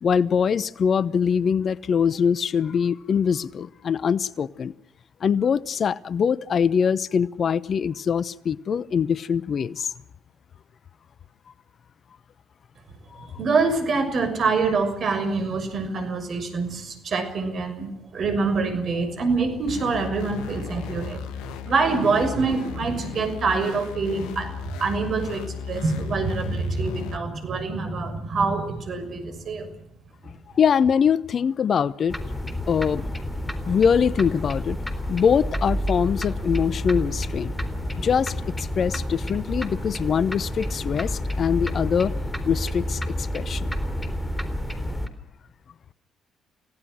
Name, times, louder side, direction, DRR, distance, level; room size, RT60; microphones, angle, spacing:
voice 1, 0.0-4.7 5.2-9.9 13.1-13.3 30.2-32.2 32.7-33.0 33.7-34.8 35.1-37.5 38.0-42.1 42.5-43.7, left 7 dB, 50° left, 0.9 m, -23 dB
voice 2, 13.2-21.3 21.6-24.5 24.8-29.7 30.2-30.3, right 4 dB, 55° right, 6.5 m, -25 dB
sound 1, 19.7-27.2, left 8 dB, 75° left, 1.3 m, -35 dB
sound 2, 32.1-45.1, left 1 dB, 15° left, 3.8 m, -29 dB
30.0 x 17.5 x 6.4 m
hypercardioid pair, 50°, 0 cm